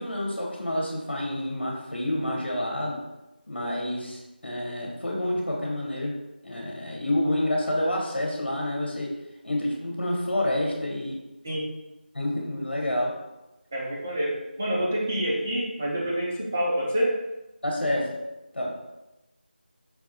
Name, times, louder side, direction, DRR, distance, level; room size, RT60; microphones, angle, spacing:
voice 1, 0.0-3.0 3.5-9.2 9.4-11.2 12.1-13.2 17.6-18.2 18.5-18.8, left 1 dB, 80° left, -1 dB, 1.0 m, -28 dB
voice 2, 13.7-17.2, equal, 10° right, -5 dB, 0.3 m, -27 dB
4.6 x 2.3 x 2.7 m, 0.99 s
figure-of-eight pair, 170°, 6 cm